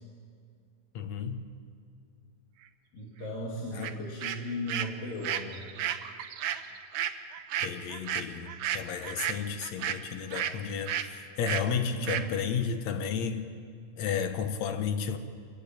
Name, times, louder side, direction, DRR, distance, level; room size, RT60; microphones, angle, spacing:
voice 1, 0.9-1.5 3.7-4.1 7.6-13.5 14.0-15.2, left 6 dB, 65° left, 2.1 m, -33 dB
voice 2, 2.9-5.7 11.9-12.4, equal, 85° left, 4.4 m, -36 dB
sound 1, 3.8-3.9 4.2-10.6 10.9-11.1 11.4-11.7 12.1-12.3, right 10 dB, 70° right, 2.0 m, -33 dB
26.0 x 15.5 x 9.0 m
omnidirectional pair, 3.9 m